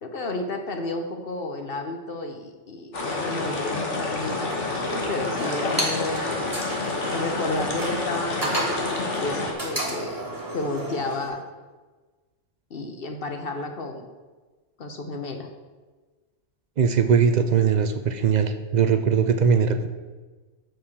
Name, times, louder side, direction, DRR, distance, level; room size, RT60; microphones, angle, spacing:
voice 1, 0.0-6.6 7.1-8.6 8.9-10.3 10.5-11.4 12.7-14.1 14.8-15.5, left 2 dB, 55° left, 5 dB, 1.0 m, -32 dB
sound 1, 2.9-9.5, left 3 dB, 75° left, 1.7 m, -29 dB
sound 2, 4.2-11.3, right 1 dB, 15° right, 1.7 m, -33 dB
voice 2, 16.8-19.9, right 6 dB, 50° right, 8 dB, 0.5 m, -20 dB
7.5 x 4.7 x 7.0 m, 1.3 s
omnidirectional pair, 1.2 m